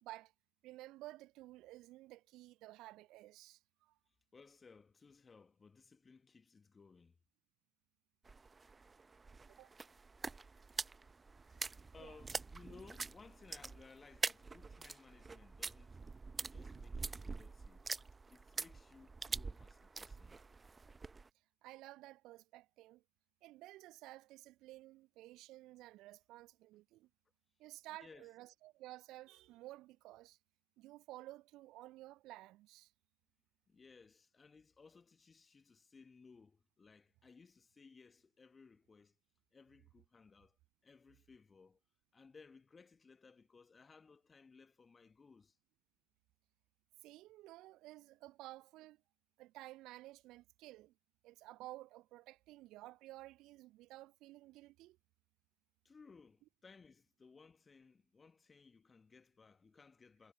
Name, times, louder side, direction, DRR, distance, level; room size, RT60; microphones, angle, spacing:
voice 1, 0.0-0.3 0.6-4.0 9.5-9.7 12.0-12.2 21.6-23.0 23.4-27.1 27.6-30.4 30.8-32.9 47.0-49.0 49.4-50.9 51.2-55.0, right 17 dB, 40° right, 0.4 m, -54 dB
voice 2, 4.3-7.2 11.5-11.6 11.9-16.0 16.5-17.9 18.3-20.4 28.0-28.3 33.7-39.1 39.5-40.6 40.8-41.8 42.1-45.6 55.8-60.3, left 4 dB, 15° left, 1.6 m, -61 dB
sound 1, 8.2-21.3, right 4 dB, 15° right, 0.9 m, -45 dB
figure-of-eight pair, 95°, 0 cm